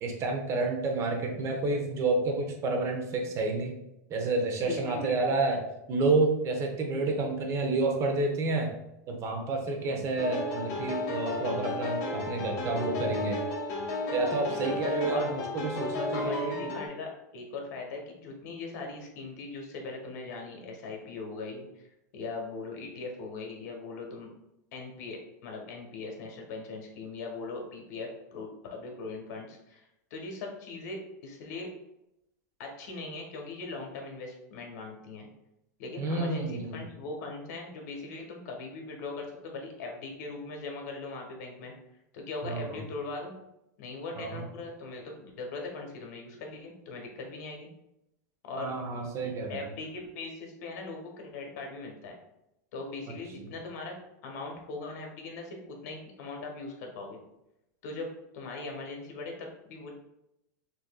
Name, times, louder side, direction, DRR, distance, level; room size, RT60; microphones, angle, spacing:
voice 1, 0.0-3.7 4.1-5.6 5.9-8.7 9.1-13.4 14.1-16.7 36.0-36.9 42.4-42.8 44.2-44.5 48.6-49.6, right 3 dB, 30° right, 3 dB, 0.8 m, -29 dB
voice 2, 4.6-5.3 14.4-14.8 15.1-15.3 16.1-21.9 22.1-24.3 24.7-29.8 30.1-31.7 32.6-35.3 35.8-41.7 42.1-43.3 43.8-47.7 48.4-48.7 49.5-52.1 52.7-53.9 54.2-57.2 57.8-59.9, left 3 dB, 60° left, 1 dB, 1.2 m, -40 dB
sound 1, 10.2-16.9, left 2 dB, 40° left, 1.0 m, -33 dB
6.3 x 2.7 x 2.2 m, 0.86 s
supercardioid pair, 135°, 10 cm